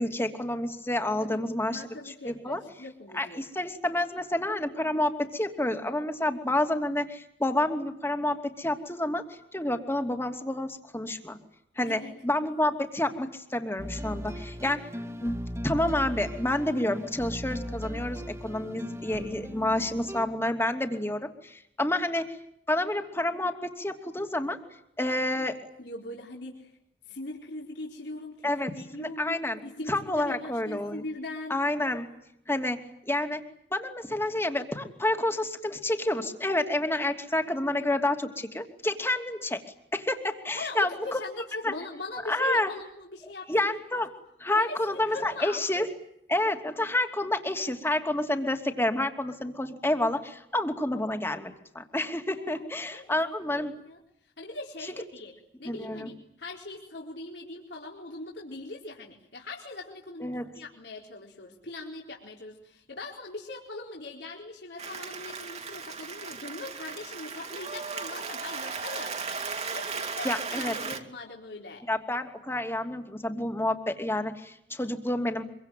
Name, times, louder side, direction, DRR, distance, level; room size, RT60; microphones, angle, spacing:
voice 1, 0.0-1.8 2.3-2.6 3.1-9.2 9.5-11.4 11.8-14.9 15.2-15.4 15.6-22.3 22.7-24.6 25.0-25.6 28.4-29.6 29.9-31.0 31.5-32.1 32.5-32.8 33.1-33.4 33.7-39.6 39.9-41.2 41.6-41.7 42.3-42.7 43.5-44.1 44.4-45.9 46.3-53.7 55.6-56.1 60.2-60.5 70.2-70.7 71.9-75.4, left 1 dB, 15° left, 6 dB, 2.8 m, -29 dB
voice 2, 1.7-3.4 11.9-12.1 25.4-25.5 25.8-26.7 27.1-31.6 40.5-43.5 43.9-44.0 44.5-45.6 52.3-52.7 52.9-53.2 53.5-54.0 54.4-55.3 55.6-69.1 69.7-71.8, left 2 dB, 65° left, -1 dB, 4.3 m, -41 dB
sound 1, 13.8-20.3, equal, 15° right, 2.0 m, -38 dB
Applause, 64.8-71.0, right 5 dB, 35° right, 2.7 m, -36 dB
25.5 x 24.0 x 9.3 m, 0.74 s
head